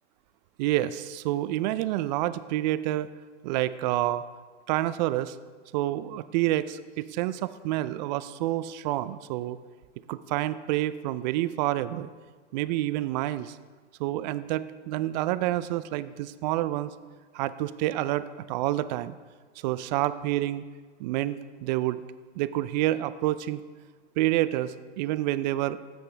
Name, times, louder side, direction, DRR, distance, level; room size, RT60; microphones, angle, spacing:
voice 1, 0.6-3.1 3.4-4.2 4.7-5.4 5.7-9.6 10.1-12.1 12.5-13.6 14.0-16.9 17.3-19.2 19.6-20.6 21.0-22.0 22.4-23.6 24.2-25.8, right 15 dB, 40° right, 15 dB, 0.4 m, -28 dB
13.0 x 8.0 x 3.3 m, 1.5 s
hypercardioid pair, 125°, 35 cm